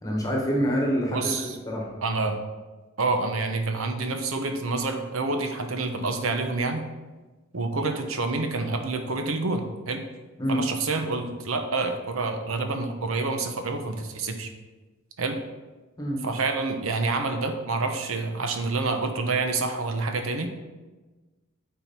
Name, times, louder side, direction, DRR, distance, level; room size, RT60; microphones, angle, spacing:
voice 1, 0.0-1.3 1.7-1.9 10.4-10.6 16.0-16.2, equal, 15° left, -1 dB, 1.2 m, -26 dB
voice 2, 1.1-1.6 2.0-2.4 3.0-6.8 7.5-10.0 10.5-14.5 15.2-15.4 16.2-20.5, right 3 dB, 80° right, 6 dB, 0.9 m, -28 dB
8.8 x 4.5 x 4.4 m, 1.2 s
head